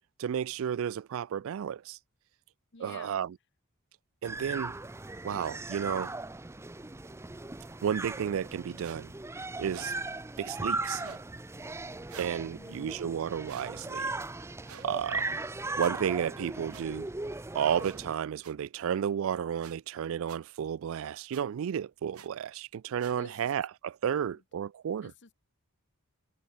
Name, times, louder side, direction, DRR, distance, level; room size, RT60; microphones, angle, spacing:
voice 1, 0.2-2.0 2.8-3.4 4.2-4.7 5.2-6.1 7.8-9.1 9.6-9.9 10.4-11.0 12.2-14.1 14.8-15.3 15.8-17.1 17.5-25.1, right 8 dB, 60° right, 0.3 m, -32 dB
voice 2, 2.7-3.2 12.5-13.1 23.2-23.5 24.3-24.4 25.0-25.3, left 4 dB, 55° left, 1.3 m, -51 dB
sound 1, 4.2-18.1, right 2 dB, 10° right, 0.6 m, -38 dB
sound 2, 8.8-9.0 9.7-9.9 10.9-11.3 12.1-12.4 13.4-13.7 14.6-14.9 15.8-15.9 16.7-16.8 17.8-18.0 18.4-18.5 19.6-19.7 20.3-20.4 21.3-21.4 22.1-22.3 23.0-23.2, right 7 dB, 85° right, 1.7 m, -49 dB
head